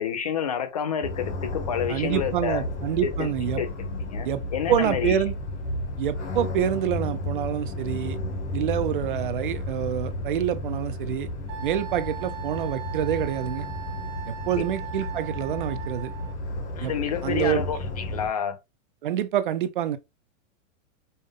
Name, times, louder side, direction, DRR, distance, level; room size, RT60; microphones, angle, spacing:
voice 1, 0.0-2.6 3.0-3.3 3.6-3.7 4.1-5.1 14.6-14.7 16.8-18.6, left 8 dB, 35° left, 0.4 m, -29 dB
sound 1, 1.0-18.3, left 1 dB, 65° left, 1.8 m, -33 dB
voice 2, 1.9-3.6 4.2-4.4 4.7-5.3 6.0-8.2 8.5-11.3 11.6-13.7 14.3-16.1 16.8-16.9 17.2-17.6 19.0-20.0, right 10 dB, 45° right, 0.4 m, -27 dB
Wind instrument woodwind instrument, 11.5-16.3, right 11 dB, 20° right, 0.9 m, -39 dB
5.4 x 2.1 x 3.5 m
supercardioid pair, 170°, 39 cm